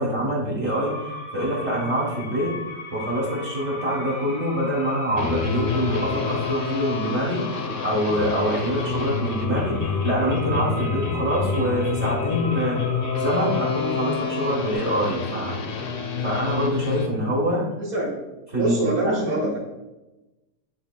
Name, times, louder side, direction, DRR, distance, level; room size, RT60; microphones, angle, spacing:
voice 1, 0.0-2.6 2.9-7.4 7.8-12.8 13.2-15.6 16.2-17.6 18.5-19.4, equal, 45° right, -5 dB, 1.5 m, -25 dB
sound 1, 0.7-14.7, left 2 dB, 80° left, 1.8 m, -37 dB
sound 2, 5.1-17.1, left 5 dB, 65° left, 0.5 m, -28 dB
voice 2, 17.8-18.1 18.6-19.6, right 1 dB, 60° right, -7 dB, 2.0 m, -24 dB
10.5 x 4.1 x 2.2 m, 1.0 s
omnidirectional pair, 1.8 m